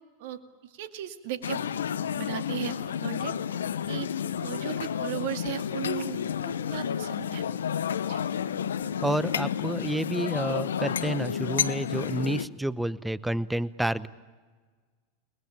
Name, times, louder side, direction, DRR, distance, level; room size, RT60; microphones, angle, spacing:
voice 1, 0.2-1.6 2.1-3.3 3.9-4.1 4.4-7.4 8.1-8.2, right 12 dB, 60° right, 8 dB, 2.2 m, -36 dB
sound 1, 1.4-12.5, left 8 dB, 80° left, 0.8 m, -31 dB
voice 2, 9.0-14.1, right 1 dB, 5° right, 17 dB, 0.9 m, -29 dB
30.0 x 21.0 x 8.8 m, 1.5 s
hypercardioid pair, 95°, 0 cm